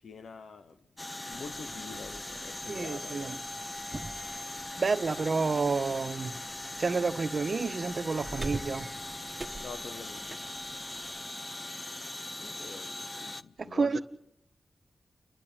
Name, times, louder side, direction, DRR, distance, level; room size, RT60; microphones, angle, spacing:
voice 1, 0.0-3.3 9.6-10.4 12.3-14.0, left 5 dB, 80° left, 1.1 m, -46 dB
sound 1, 1.0-13.4, left 1 dB, 20° left, 0.9 m, -40 dB
sound 2, 1.3-11.3, right 2 dB, 25° right, 1.6 m, -46 dB
voice 2, 2.7-3.3 4.8-6.4 6.8-8.9 13.6-14.0, right 4 dB, 55° right, 1.4 m, -30 dB
30.0 x 12.0 x 9.0 m
wide cardioid pair, 80°, 0 cm